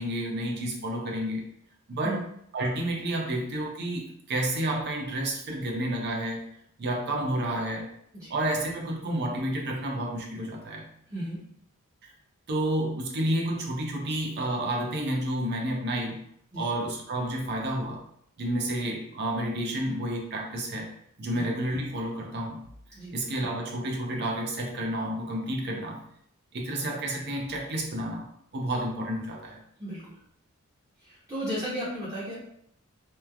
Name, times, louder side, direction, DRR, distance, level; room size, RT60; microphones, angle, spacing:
voice 1, 0.0-1.4 1.9-2.2 2.5-6.4 6.8-7.9 8.3-10.9 12.5-16.2 16.5-18.0 18.4-20.9 21.2-22.6 23.1-26.0 26.5-28.2 28.5-29.6, right 1 dB, 50° right, 0 dB, 0.6 m, -30 dB
voice 2, 11.1-11.4 16.5-16.7 21.3-21.4 22.9-23.1 29.8-30.1 31.0-32.3, equal, 15° right, -9 dB, 0.7 m, -34 dB
3.0 x 2.2 x 2.3 m, 0.69 s
head